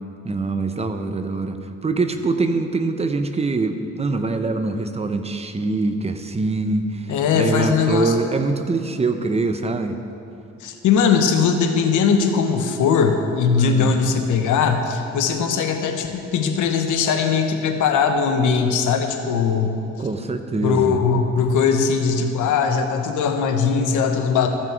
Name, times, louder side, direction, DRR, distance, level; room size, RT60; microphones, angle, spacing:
voice 1, 0.2-10.0 13.6-13.9 20.0-21.0, right 3 dB, 20° right, 8 dB, 0.7 m, -24 dB
voice 2, 7.1-8.1 10.6-19.7 20.6-24.5, left 6 dB, 80° left, 5 dB, 1.0 m, -20 dB
14.0 x 6.1 x 4.6 m, 2.7 s
cardioid pair, 90°, 30 cm